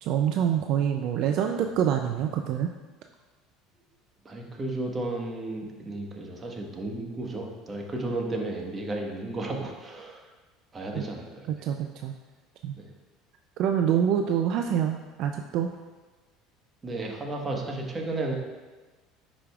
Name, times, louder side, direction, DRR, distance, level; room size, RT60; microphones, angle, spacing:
voice 1, 0.0-2.7 10.9-11.0 11.5-12.1 12.6-12.7 13.6-15.7, right 9 dB, 60° right, 5 dB, 0.4 m, -26 dB
voice 2, 4.2-10.2 10.7-11.5 12.7-12.9 16.8-18.4, right 2 dB, 25° right, 1 dB, 1.3 m, -33 dB
9.9 x 5.1 x 2.4 m, 1.3 s
supercardioid pair, 95°, 0 cm